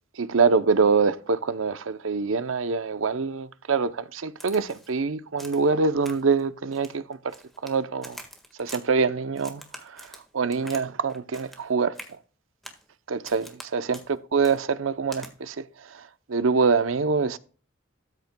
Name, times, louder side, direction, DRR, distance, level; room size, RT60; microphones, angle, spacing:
voice 1, 0.2-7.3 7.6-8.2 8.6-9.6 9.9-10.1 10.3-11.9 13.1-14.0 14.3-15.6 16.3-17.4, right 5 dB, 90° right, 0.6 m, -24 dB
Crack, 4.4-4.9 5.4-5.7 6.0-6.4 6.7-7.7 8.0-8.8 9.4-10.8 11.1-11.7 11.9-12.1 12.6-12.8 13.2-13.7 13.9-14.1 14.4-14.6 15.1-15.3, equal, ahead, 1.5 m, -44 dB
13.5 x 8.1 x 2.2 m
head